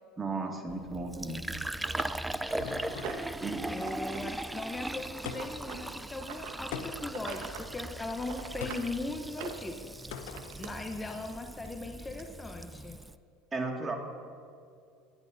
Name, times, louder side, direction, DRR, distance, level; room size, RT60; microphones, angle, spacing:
voice 1, 0.2-1.5 3.4-3.7 13.5-14.0, right 3 dB, 25° right, 1 dB, 2.1 m, -34 dB
Fill (with liquid), 0.7-13.2, right 1 dB, 5° right, 0.4 m, -39 dB
sound 1, 1.3-1.4 1.8-3.4 3.8-4.2 4.5-6.5 7.0-7.7 8.0-8.9 9.3-10.7 11.7-11.8 12.2-12.3, right 9 dB, 70° right, 1.2 m, -44 dB
sound 2, 1.8-3.4 5.3-5.7 6.7-7.3 8.6-9.0 10.1-10.6, left 7 dB, 75° left, 0.9 m, -41 dB
voice 2, 3.7-9.7 10.6-13.0, left 2 dB, 15° left, 4 dB, 0.9 m, -39 dB
24.5 x 11.0 x 2.7 m, 2.4 s
hypercardioid pair, 90°, 0 cm